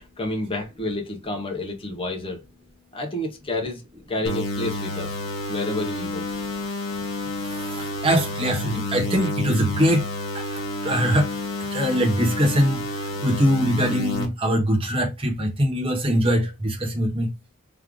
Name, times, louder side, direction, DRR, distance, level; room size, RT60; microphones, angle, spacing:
voice 1, 0.0-2.4 2.9-3.8 4.1-5.2 5.5-6.2, left 1 dB, 25° left, 1.0 m, -29 dB
sound 1, 4.3-14.3, left 2 dB, 65° left, 1.4 m, -30 dB
voice 2, 7.3-10.1 10.3-11.3 11.6-17.3, equal, 25° right, 1.2 m, -23 dB
3.4 x 3.2 x 3.7 m
head